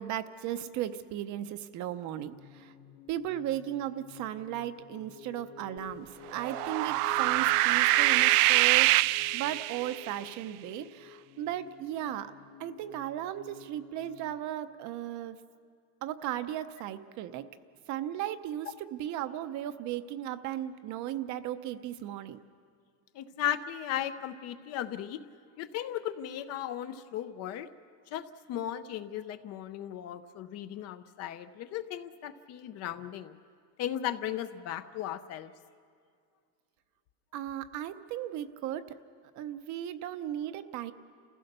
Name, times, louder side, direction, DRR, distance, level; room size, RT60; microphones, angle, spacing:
voice 1, 0.0-2.7 3.1-8.9 9.3-12.3 12.6-15.4 16.0-17.5 17.9-22.4 37.3-39.0 39.3-40.9, right 12 dB, 45° right, 11 dB, 0.7 m, -36 dB
sound 1, 2.3-14.4, left 8 dB, 60° left, 3.1 m, -50 dB
sound 2, 6.3-10.1, right 18 dB, 85° right, 0.6 m, -24 dB
voice 2, 23.1-25.2 25.6-27.7 28.1-33.4 33.8-35.5, left 11 dB, 40° left, 11 dB, 0.5 m, -36 dB
29.0 x 15.5 x 6.6 m, 2.2 s
cardioid pair, 170°, 42 cm